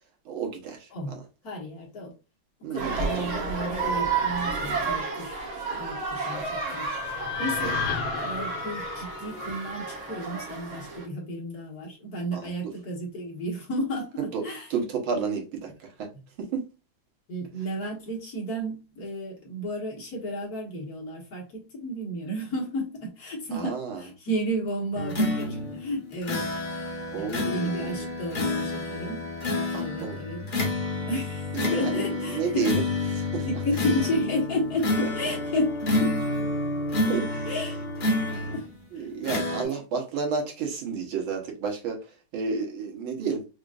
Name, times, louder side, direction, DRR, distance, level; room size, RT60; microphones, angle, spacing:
voice 1, 0.3-1.2 2.6-3.3 5.7-5.9 7.6-7.8 12.3-12.5 14.2-14.4 14.7-16.1 16.4-16.6 23.5-24.0 27.1-28.1 29.7-30.2 31.5-32.8 33.2-33.5 37.1-37.5 38.9-43.5, right 5 dB, 80° right, 1.9 m, -31 dB
voice 2, 1.4-2.1 2.6-5.4 5.8-6.9 7.4-7.8 8.2-14.7 17.3-26.8 27.1-29.3 29.7-30.4 31.1-32.7 33.5-36.2 37.4-37.8 38.1-38.7 38.9-39.1 39.6-39.8, equal, 50° left, 1.6 m, -32 dB
sound 1, 2.8-11.1, right 4 dB, 50° right, 1.3 m, -31 dB
sound 2, 6.1-10.4, left 9 dB, 80° left, 1.4 m, -35 dB
sound 3, 25.0-38.8 39.2-39.6, left 2 dB, 35° left, 0.8 m, -29 dB
4.9 x 2.5 x 2.4 m
omnidirectional pair, 2.3 m